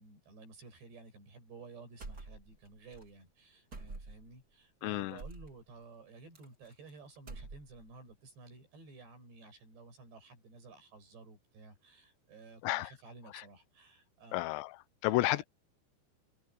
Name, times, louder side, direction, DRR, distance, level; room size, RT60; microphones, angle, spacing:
voice 1, 0.0-14.4 15.1-15.4, right 4 dB, 70° right, 10.0 m, -54 dB
sound 1, 2.0-2.7 2.9-3.1 3.7-4.3 5.2-5.5 6.3-6.9 7.2-7.9, right 3 dB, 25° right, 3.0 m, -46 dB
voice 2, 4.8-5.2 12.6-12.9 13.3-13.4 14.3-14.8 15.0-15.4, left 19 dB, 85° left, 2.9 m, -31 dB
open air
omnidirectional pair, 5.2 m